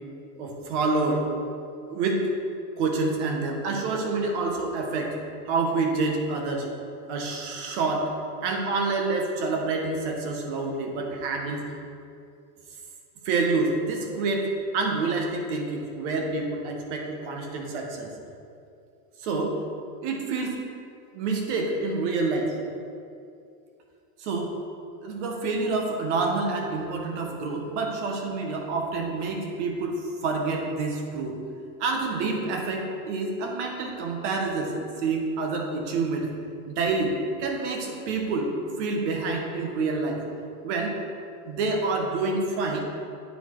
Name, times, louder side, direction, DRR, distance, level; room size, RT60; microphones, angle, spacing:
voice 1, 0.4-1.3 1.9-2.3 2.8-5.1 5.5-6.7 7.1-8.1 8.4-11.6 13.2-18.1 19.2-19.5 20.0-20.6 21.1-22.5 24.2-24.5 25.0-31.4 31.8-36.3 36.7-37.1 37.4-38.5 38.8-40.2 40.6-41.0 41.4-42.8, right 3 dB, 50° right, 2 dB, 1.2 m, -27 dB
9.6 x 4.2 x 4.5 m, 2.5 s
supercardioid pair, 175°, 46 cm